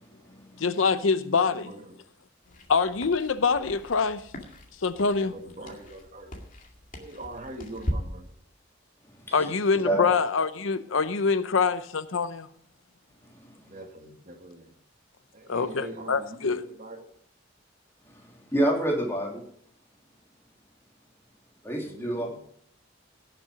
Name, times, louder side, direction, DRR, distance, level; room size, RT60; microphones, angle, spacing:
voice 1, 0.6-1.7 2.7-4.2 4.8-5.3 9.3-12.5 15.5-16.6, left 5 dB, 85° left, 0.7 m, -25 dB
voice 2, 1.4-2.0 5.2-6.3 7.0-8.3 13.6-14.7 15.3-17.1 21.7-22.4, right 1 dB, 40° right, 1.8 m, -43 dB
sound 1, 2.4-7.9, equal, 45° left, 2.2 m, -39 dB
voice 3, 9.2-9.5 9.8-10.1 13.4-13.6 18.1-19.4 21.6-22.3, right 1 dB, 10° left, 3.3 m, -28 dB
17.5 x 7.0 x 5.1 m
head